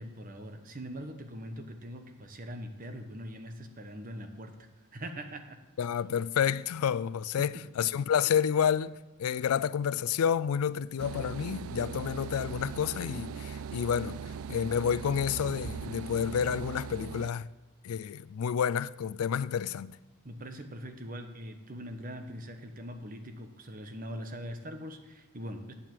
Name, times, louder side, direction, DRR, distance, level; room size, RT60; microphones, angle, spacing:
voice 1, 0.0-4.6 4.9-5.6 7.4-7.6 20.2-25.7, equal, 40° right, 1.0 m, -42 dB
voice 2, 5.8-14.2 14.5-17.5 17.8-20.0, left 8 dB, 80° left, 0.3 m, -29 dB
sound 1, 11.0-17.3, right 6 dB, 75° right, 0.3 m, -40 dB
8.6 x 7.5 x 7.5 m
head